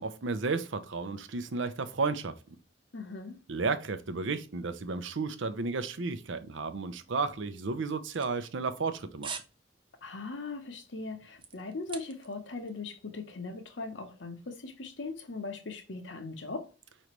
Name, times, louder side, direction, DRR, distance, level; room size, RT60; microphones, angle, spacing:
voice 1, 0.0-2.6 3.5-9.3, right 4 dB, 80° right, 0.6 m, -33 dB
voice 2, 2.9-3.4 10.0-16.7, left 3 dB, 75° left, 1.0 m, -39 dB
sound 1, 7.8-8.9 9.2-9.6 9.9-10.1 10.6-12.4 12.7-12.8, right 6 dB, 25° right, 0.5 m, -43 dB
5.1 x 3.2 x 3.0 m
head